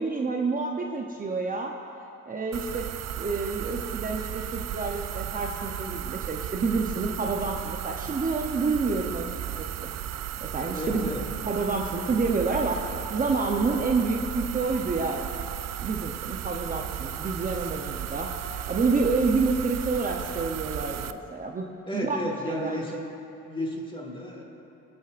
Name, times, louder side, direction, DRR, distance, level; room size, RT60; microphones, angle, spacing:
voice 1, 0.0-1.7 2.3-2.9 3.2-9.3 9.6-9.9 10.4-11.1 11.4-12.8 13.1-15.3 15.8-18.3 18.7-21.7 21.9-23.0, right 4 dB, 30° right, 1 dB, 0.8 m, -28 dB
sound 1, 2.5-21.1, right 11 dB, 60° right, 0.5 m, -35 dB
voice 2, 10.7-11.2 21.9-22.9 23.4-24.4, left 1 dB, 15° left, 0 dB, 1.9 m, -33 dB
24.0 x 8.7 x 2.5 m, 2.9 s
cardioid pair, 90°, 30 cm